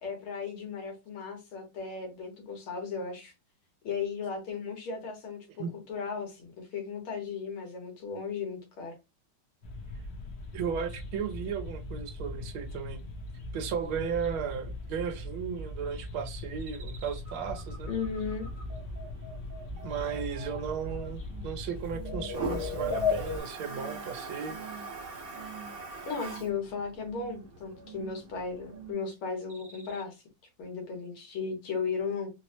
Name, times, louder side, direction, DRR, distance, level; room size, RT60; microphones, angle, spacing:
voice 1, 0.0-3.3 3.8-9.0 17.9-18.5 26.1-30.2 30.6-32.3, left 5 dB, 85° left, 2.1 m, -36 dB
sound 1, 9.6-23.4, left 3 dB, 55° left, 1.3 m, -38 dB
voice 2, 10.5-13.0 13.5-17.9 19.8-24.6, right 7 dB, 80° right, 1.5 m, -35 dB
sound 2, 16.6-21.6 21.9-22.4 22.7-23.3 23.6-24.1 24.4-25.0 25.3-25.8 26.1-26.6 27.0-27.4 27.8-28.3 28.7-29.1 29.5-30.0, right 6 dB, 60° right, 1.4 m, -48 dB
Toilet flush, 17.4-28.9, right 3 dB, 40° right, 0.9 m, -44 dB
4.4 x 2.1 x 2.8 m
omnidirectional pair, 2.3 m